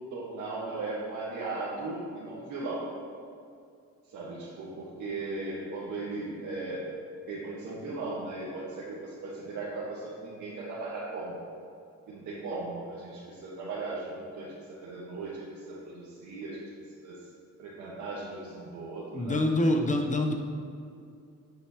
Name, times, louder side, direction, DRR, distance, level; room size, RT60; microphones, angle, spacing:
voice 1, 0.1-2.8 4.1-6.8 7.3-11.4 12.1-16.6 17.0-17.1 17.6-19.5, right 3 dB, 80° right, -8 dB, 1.8 m, -37 dB
voice 2, 19.1-20.3, left 1 dB, 25° left, 3 dB, 1.1 m, -25 dB
9.4 x 9.3 x 3.1 m, 2.4 s
cardioid pair, 90°, 30 cm